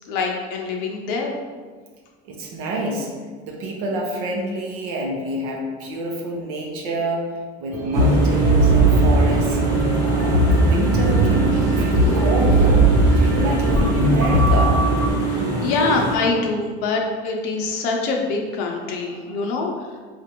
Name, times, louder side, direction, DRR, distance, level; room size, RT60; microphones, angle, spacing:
voice 1, 0.1-1.3 15.3-19.7, left 3 dB, 60° left, 0 dB, 0.6 m, -24 dB
voice 2, 2.3-3.1 3.4-7.3 7.6-9.6 10.0-12.8 13.1-14.7 19.0-19.4, right 1 dB, 90° right, 0 dB, 0.7 m, -27 dB
sound 1, 7.7-14.5, right 1 dB, 55° right, 0.7 m, -19 dB
sound 2, 7.9-16.2, right 4 dB, 20° right, 0.7 m, -24 dB
sound 3, 9.6-15.1, right 1 dB, 10° left, 0.3 m, -25 dB
4.3 x 2.5 x 2.9 m, 1.5 s
cardioid pair, 155°, 18 cm